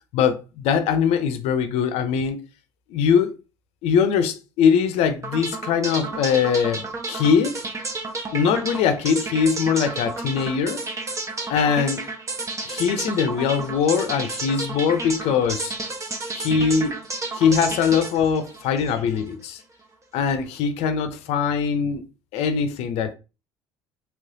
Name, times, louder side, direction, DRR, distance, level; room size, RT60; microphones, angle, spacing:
voice 1, 0.1-2.4 2.9-3.3 3.8-7.6 8.3-10.8 11.5-12.0 12.6-15.7 16.3-16.9 17.3-19.6 20.1-22.0 22.3-23.1, left 7 dB, 65° left, 0.6 m, -22 dB
sound 1, 5.2-19.3, right 3 dB, 25° right, 0.8 m, -31 dB
3.2 x 3.0 x 2.7 m
hypercardioid pair, 70°, 12 cm